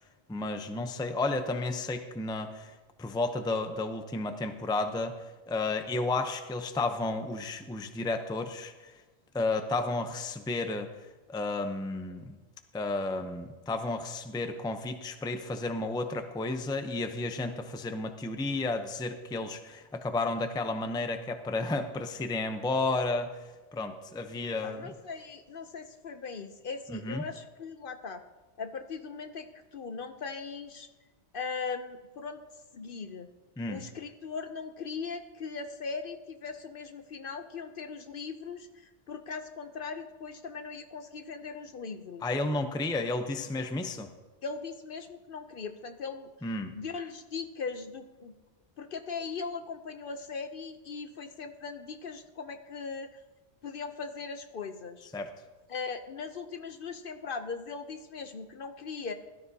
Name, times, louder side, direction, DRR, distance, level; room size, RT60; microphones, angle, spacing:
voice 1, 0.3-2.7 3.0-5.1 5.5-8.9 9.3-10.9 11.3-12.3 12.7-23.3 23.7-24.9 26.9-27.2 33.6-33.8 42.2-44.1 46.4-46.7 55.1-55.3, left 2 dB, 5° left, 7 dB, 0.5 m, -32 dB
voice 2, 24.6-28.2 28.6-30.9 31.3-32.4 32.7-33.3 33.7-42.3 44.4-46.3 46.7-48.3 48.8-53.2 53.6-55.1 55.7-59.1, left 5 dB, 55° left, 8 dB, 0.8 m, -39 dB
17.0 x 12.5 x 2.8 m, 1.3 s
omnidirectional pair, 1.2 m